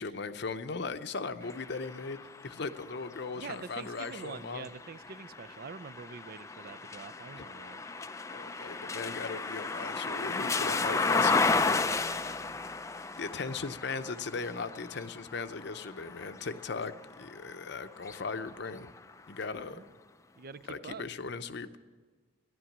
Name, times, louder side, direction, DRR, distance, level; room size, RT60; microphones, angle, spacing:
voice 1, 0.0-4.7 7.4-7.5 8.3-11.8 13.0-18.9 19.3-19.8 20.7-21.8, left 4 dB, 55° left, 10 dB, 0.7 m, -38 dB
sound 1, 1.4-17.3 17.9-19.1, left 4 dB, 15° left, 0.3 m, -34 dB
voice 2, 3.3-7.8 8.3-8.8 12.2-12.6 19.7-19.9 20.4-21.0, right 5 dB, 45° right, 14 dB, 0.4 m, -46 dB
16.0 x 11.0 x 7.3 m, 1.5 s
head